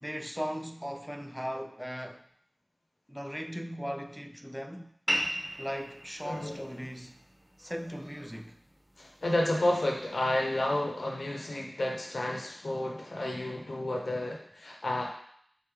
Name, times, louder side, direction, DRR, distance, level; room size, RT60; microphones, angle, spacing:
voice 1, 0.0-2.2 3.1-4.9 5.6-7.2 7.6-8.6, equal, ahead, 0.3 m, -38 dB
sound 1, 5.1-10.1, equal, 20° right, 1.1 m, -38 dB
voice 2, 6.2-6.7 9.0-15.1, left 1 dB, 80° left, 0.7 m, -31 dB
4.0 x 3.1 x 3.5 m
wide cardioid pair, 55°, 0 cm